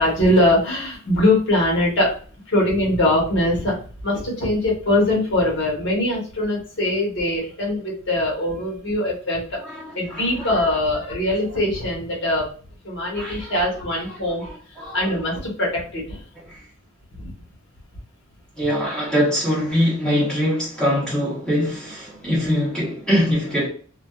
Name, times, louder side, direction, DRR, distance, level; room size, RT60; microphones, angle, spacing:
voice 1, 0.0-2.1 2.5-3.8 4.0-9.6 9.9-12.5 12.8-14.4 14.9-16.2 17.2-17.3, left 1 dB, 55° left, 1.2 m, -22 dB
voice 2, 9.6-10.7 13.1-13.5 14.1-15.1 16.5-16.6 18.6-23.7, equal, 5° left, 0.9 m, -23 dB
2.5 x 2.3 x 2.3 m
head